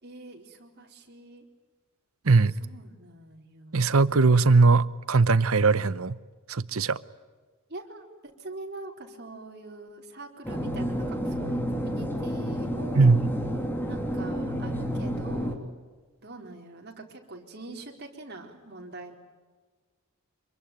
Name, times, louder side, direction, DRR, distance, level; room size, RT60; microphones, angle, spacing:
voice 1, 0.0-1.4 2.5-4.0 7.7-13.1 13.9-15.7 16.2-19.2, right 2 dB, 50° right, 1 dB, 4.3 m, -44 dB
voice 2, 3.7-6.2 6.5-7.0 12.9-13.3, right 4 dB, 70° right, 17 dB, 0.9 m, -20 dB
sound 1, 10.4-15.6, equal, 10° left, 3.0 m, -30 dB
26.5 x 23.0 x 9.2 m, 1.4 s
head